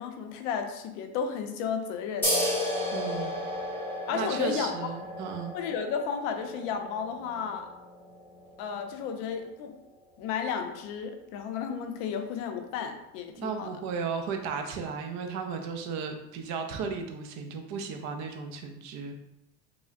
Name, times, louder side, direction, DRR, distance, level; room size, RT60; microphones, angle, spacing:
voice 1, 0.0-2.3 4.1-4.7 5.5-7.7 8.6-9.8 10.2-13.7, left 6 dB, 70° left, 5 dB, 0.6 m, -33 dB
sound 1, 2.2-9.4, left 1 dB, 5° left, 0.8 m, -34 dB
voice 2, 2.9-3.3 4.1-5.5 13.4-19.1, right 5 dB, 45° right, 4 dB, 0.5 m, -35 dB
4.8 x 2.1 x 2.5 m, 0.88 s
cardioid pair, 150°, 40 cm